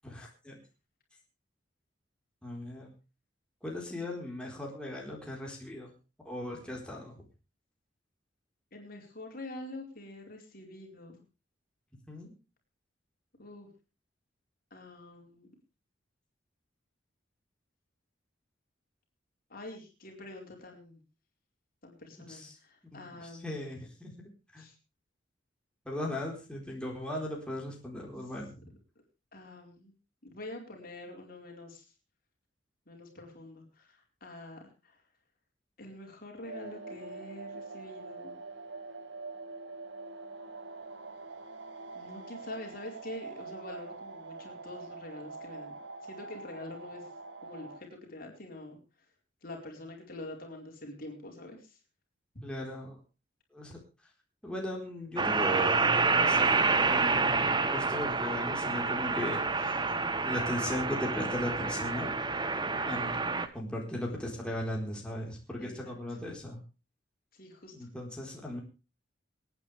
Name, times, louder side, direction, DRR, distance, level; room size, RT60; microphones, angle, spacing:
voice 1, 0.0-0.6 2.4-2.9 3.6-5.9 6.2-7.2 12.1-12.3 22.3-22.6 22.9-24.1 24.5-24.7 25.9-28.5 52.4-53.0 53.5-53.7 54.4-59.9 60.2-62.1 62.8-63.2 63.5-66.6 67.7-68.6, left 1 dB, 5° left, -2 dB, 4.2 m, -37 dB
voice 2, 8.7-11.2 13.4-13.7 14.7-15.5 19.5-21.0 21.8-23.7 24.6-24.7 29.3-29.9 30.2-31.8 32.9-34.9 35.8-38.4 41.9-45.8 46.1-47.0 47.4-48.8 49.4-51.7 65.6-65.9 67.4-67.7, left 2 dB, 50° left, 1 dB, 4.7 m, -46 dB
sound 1, 36.4-47.8, right 3 dB, 70° right, 1.9 m, -44 dB
sound 2, 55.2-63.5, right 4 dB, 25° right, 1.0 m, -28 dB
27.0 x 9.5 x 3.4 m, 0.31 s
head